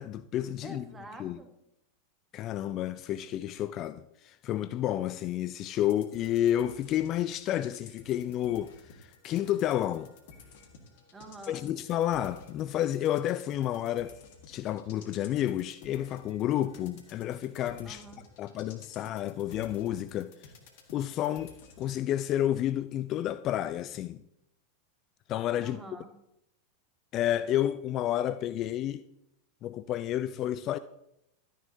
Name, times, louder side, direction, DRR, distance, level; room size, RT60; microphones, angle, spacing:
voice 1, 0.0-0.9 1.2-1.4 2.3-10.1 11.5-14.2 14.5-18.0 18.4-20.5 20.9-21.5 21.8-24.2 25.3-25.8 27.1-29.0 29.6-30.8, left 12 dB, 35° left, 0.3 m, -30 dB
voice 2, 0.6-1.5 11.1-11.6 17.8-18.2 25.6-26.1, right 2 dB, 15° right, 1.6 m, -47 dB
sound 1, 5.8-22.0, left 4 dB, 55° left, 1.5 m, -53 dB
12.5 x 10.0 x 2.8 m
figure-of-eight pair, 90°, 0 cm